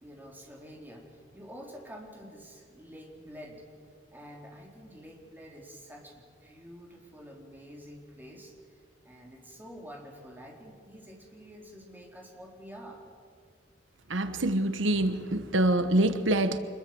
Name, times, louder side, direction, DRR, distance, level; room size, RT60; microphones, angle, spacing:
voice 1, 0.0-3.6 4.1-13.0, equal, 10° right, 0 dB, 4.1 m, -48 dB
voice 2, 14.1-16.6, right 1 dB, 85° right, 10 dB, 1.2 m, -25 dB
25.0 x 21.5 x 7.9 m, 2.1 s
head